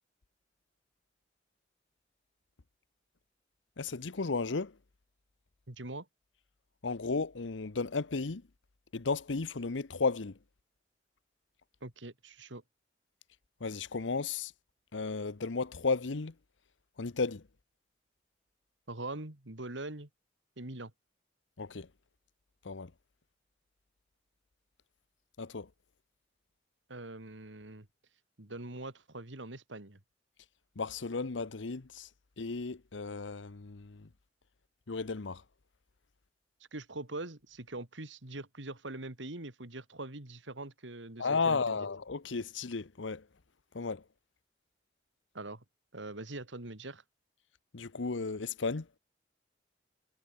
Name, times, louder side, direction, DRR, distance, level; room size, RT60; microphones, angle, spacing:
voice 1, 3.8-4.7 6.8-8.4 8.9-10.4 13.6-14.5 14.9-16.3 17.0-17.4 21.6-21.9 22.6-22.9 25.4-25.7 30.8-32.1 32.4-34.1 34.9-35.4 41.2-43.2 43.7-44.0 47.7-48.9, left 4 dB, 90° left, 0.9 m, -34 dB
voice 2, 5.7-6.1 11.8-12.6 18.9-20.1 20.6-20.9 26.9-27.9 28.4-30.0 36.7-41.9 45.3-45.6 45.9-47.0, right 2 dB, 85° right, 2.7 m, -43 dB
head